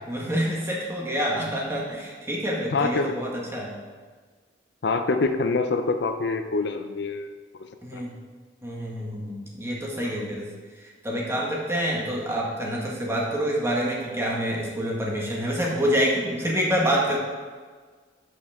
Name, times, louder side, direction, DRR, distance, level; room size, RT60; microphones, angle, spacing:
voice 1, 0.1-3.7 7.8-8.1 8.6-10.5 10.8-17.2, equal, 15° right, -3 dB, 1.7 m, -27 dB
voice 2, 2.7-3.1 4.8-7.3 7.9-8.0 10.0-10.3, left 3 dB, 65° left, 7 dB, 0.5 m, -25 dB
11.0 x 6.3 x 3.6 m, 1.5 s
head